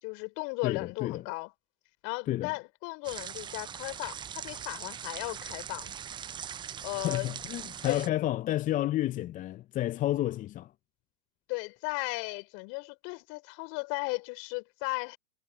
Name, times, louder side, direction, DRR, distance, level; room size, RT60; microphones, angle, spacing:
voice 1, 0.0-1.5 2.0-5.9 6.8-7.3 7.8-8.1 11.5-15.2, left 30 dB, 50° left, 4.1 m, -36 dB
voice 2, 0.6-1.2 2.3-2.5 7.0-10.7, left 14 dB, 25° left, 0.6 m, -31 dB
sound 1, 3.0-8.1, right 8 dB, 15° right, 0.5 m, -41 dB
hypercardioid pair, 105°, 31 cm